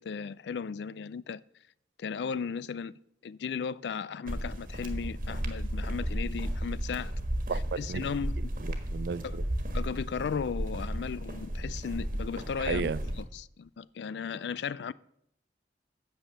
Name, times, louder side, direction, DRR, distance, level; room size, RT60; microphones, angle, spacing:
voice 1, 0.0-1.4 2.0-2.9 3.2-7.1 7.5-8.4 9.2-9.4 9.7-12.9 13.2-14.9, left 6 dB, 75° left, 0.4 m, -36 dB
sound 1, 4.3-13.2, equal, 50° right, 1.5 m, -34 dB
voice 2, 7.5-8.0 8.6-9.4 12.6-13.0, right 5 dB, 65° right, 0.4 m, -33 dB
9.0 x 6.9 x 6.7 m
head